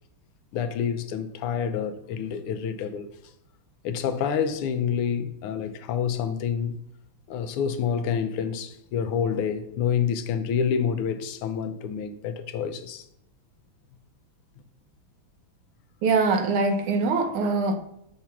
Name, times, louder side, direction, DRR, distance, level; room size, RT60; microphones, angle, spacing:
voice 1, 0.5-3.1 3.8-6.8 7.3-13.0, left 7 dB, 90° left, 1.6 m, -28 dB
voice 2, 16.0-17.8, right 4 dB, 80° right, 1.6 m, -23 dB
7.0 x 2.8 x 5.8 m
omnidirectional pair, 2.4 m